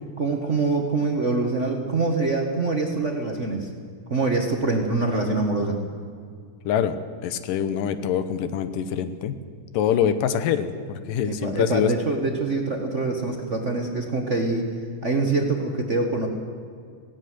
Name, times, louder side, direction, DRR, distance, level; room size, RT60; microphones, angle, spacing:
voice 1, 0.2-3.7 4.1-5.8 11.2-14.7 15.0-16.3, right 3 dB, 60° right, 3 dB, 0.7 m, -24 dB
voice 2, 6.7-9.4 9.7-11.9, left 8 dB, 90° left, 12 dB, 2.6 m, -25 dB
17.5 x 16.0 x 9.5 m, 2.2 s
omnidirectional pair, 3.7 m